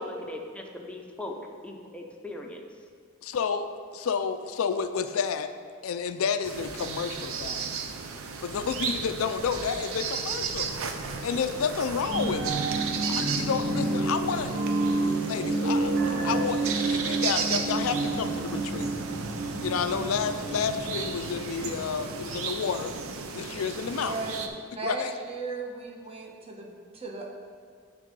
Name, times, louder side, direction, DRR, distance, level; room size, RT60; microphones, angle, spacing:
voice 1, 0.0-2.6, left 1 dB, 5° left, 1 dB, 0.7 m, -39 dB
voice 2, 3.2-3.7 3.9-5.5 5.8-7.8 8.4-10.7 11.2-12.6 13.0-14.6 15.3-18.9 19.6-22.9 23.3-24.2 24.8-25.1, left 6 dB, 85° left, 9 dB, 0.4 m, -30 dB
sound 1, 6.4-24.5, right 5 dB, 85° right, 0.6 m, -35 dB
sound 2, 12.1-23.1 23.5-23.6, right 2 dB, 55° right, 0.8 m, -30 dB
voice 3, 23.8-24.3 24.7-27.3, right 3 dB, 30° right, -1 dB, 1.0 m, -36 dB
9.5 x 3.7 x 5.3 m, 2.2 s
head